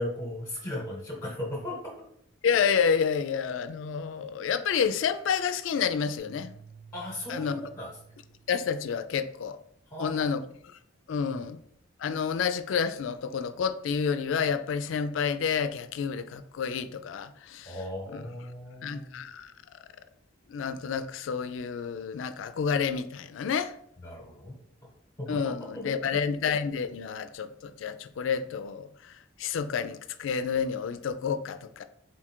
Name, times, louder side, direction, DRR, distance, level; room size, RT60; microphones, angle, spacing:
voice 1, 0.0-1.8 6.9-7.9 9.9-10.3 11.1-11.4 17.6-19.2 24.0-24.6 25.2-25.9, left 1 dB, 20° left, 1.0 m, -37 dB
voice 2, 2.4-6.6 7.3-7.6 8.5-9.6 10.0-10.4 11.1-11.6 12.0-17.8 18.1-18.2 18.8-19.5 20.5-23.7 25.3-29.1 29.4-31.8, left 6 dB, 70° left, 0.3 m, -29 dB
sound 1, 6.2-8.7, right 5 dB, 85° right, 1.7 m, -52 dB
3.9 x 2.4 x 4.3 m
head